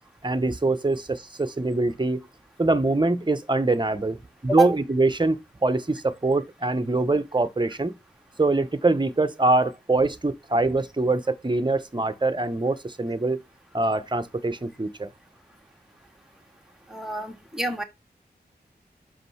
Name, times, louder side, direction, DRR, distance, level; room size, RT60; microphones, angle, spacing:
voice 1, 0.2-2.3 2.6-4.2 4.4-7.9 8.4-13.4 13.7-15.1, right 2 dB, 25° right, 1.0 m, -24 dB
voice 2, 16.9-17.8, right 3 dB, 5° right, 2.0 m, -26 dB
6.5 x 5.1 x 5.7 m
wide cardioid pair, 60°, 17 cm